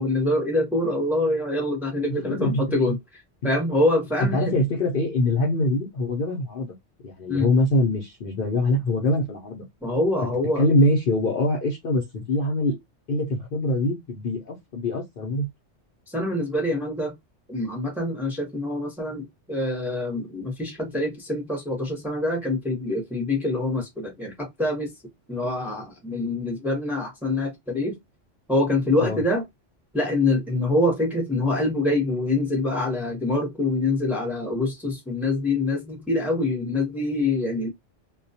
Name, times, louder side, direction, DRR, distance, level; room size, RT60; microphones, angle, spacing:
voice 1, 0.0-3.0 3.4-4.5 7.3-7.5 9.8-10.6 16.1-17.1 17.5-24.9 25.3-28.0 28.5-29.4 29.9-37.7, left 2 dB, ahead, 0.7 m, -25 dB
voice 2, 2.2-2.5 2.8-2.9 4.3-6.7 7.0-9.6 10.6-12.8 13.1-15.5 29.0-29.2, left 1 dB, 55° left, 0.7 m, -24 dB
2.3 x 2.1 x 2.6 m
omnidirectional pair, 1.2 m